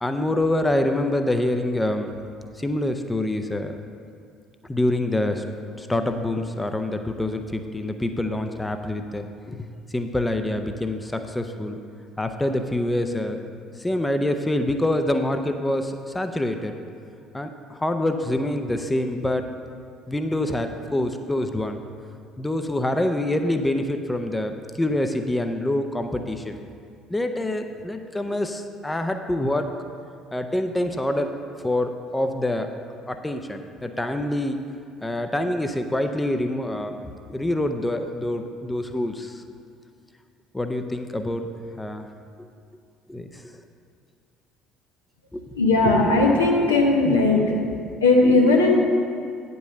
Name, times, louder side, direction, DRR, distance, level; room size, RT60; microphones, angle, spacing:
voice 1, 0.0-2.1 2.6-3.8 4.6-5.4 5.8-9.6 9.9-11.8 12.2-13.4 13.8-16.8 17.3-19.5 20.1-21.8 22.4-26.6 27.1-29.7 30.3-31.3 31.6-32.7 33.1-34.6 35.0-37.0 37.3-39.4 40.5-41.5 41.8-42.1 43.1-43.5 45.3-45.4 47.0-47.2, left 1 dB, 10° left, 6 dB, 0.6 m, -26 dB
voice 2, 45.5-47.4 48.0-48.8, left 3 dB, 80° left, -1 dB, 1.0 m, -17 dB
9.1 x 5.5 x 6.5 m, 2.3 s
figure-of-eight pair, 55°, 0 cm